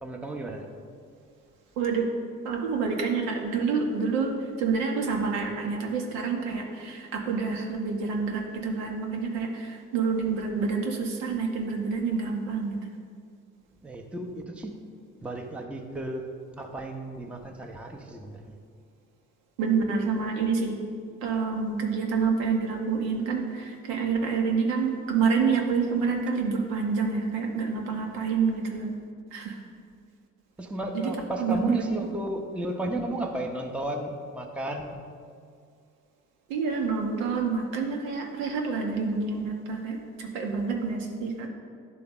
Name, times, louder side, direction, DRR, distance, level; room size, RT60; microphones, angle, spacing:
voice 1, 0.0-0.6 13.8-14.8 15.2-16.2 16.6-18.6 30.6-35.0, right 1 dB, 5° right, 2 dB, 0.7 m, -33 dB
voice 2, 2.4-4.3 4.6-12.8 19.6-20.8 21.2-28.9 29.3-29.6 30.9-31.1 31.4-32.1 36.5-41.5, right 5 dB, 70° right, 1 dB, 0.9 m, -28 dB
11.0 x 3.8 x 3.7 m, 2.2 s
figure-of-eight pair, 45°, 40 cm